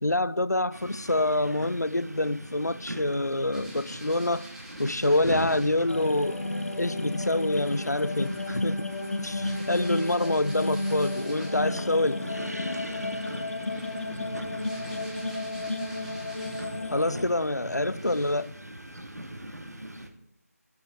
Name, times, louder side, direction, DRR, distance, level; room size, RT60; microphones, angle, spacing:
voice 1, 0.0-4.5 4.8-6.4 6.8-8.8 9.2-12.2 16.9-18.5, left 2 dB, 85° left, 0.6 m, -26 dB
sound 1, 0.7-20.1, right 1 dB, 75° right, 2.4 m, -41 dB
sound 2, 3.5-5.8 7.5-11.8 13.0-16.9 17.4-17.5 18.0-18.5, right 1 dB, 5° right, 1.3 m, -49 dB
sound 3, 5.9-17.3, left 2 dB, 50° left, 1.1 m, -32 dB
12.5 x 6.7 x 9.0 m
figure-of-eight pair, 160°, 9 cm